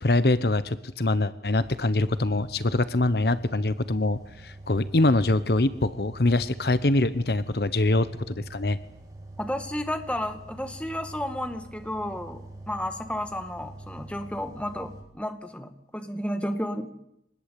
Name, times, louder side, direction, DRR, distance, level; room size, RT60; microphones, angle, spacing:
voice 1, 0.0-8.8, left 2 dB, 65° left, 14 dB, 1.0 m, -24 dB
sound 1, 1.6-15.0, right 2 dB, 20° right, 4.6 m, -45 dB
voice 2, 9.4-16.9, left 1 dB, 5° left, 7 dB, 2.0 m, -32 dB
24.5 x 19.5 x 8.5 m, 0.78 s
head